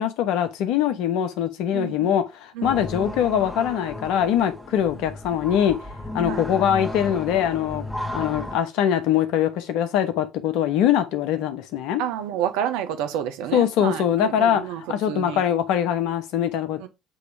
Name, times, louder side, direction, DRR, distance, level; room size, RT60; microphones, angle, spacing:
voice 1, 0.0-5.8 6.1-7.8 8.1-12.0 13.5-14.6 14.9-16.9, left 10 dB, 70° left, 1.1 m, -22 dB
voice 2, 1.7-2.2 2.5-2.8 6.3-6.4 12.0-14.8 15.1-15.4 16.8-16.9, right 10 dB, 70° right, 1.1 m, -29 dB
sound 1, 2.6-8.6, left 1 dB, 10° left, 1.6 m, -34 dB
7.6 x 3.2 x 4.9 m
hypercardioid pair, 70°, 0 cm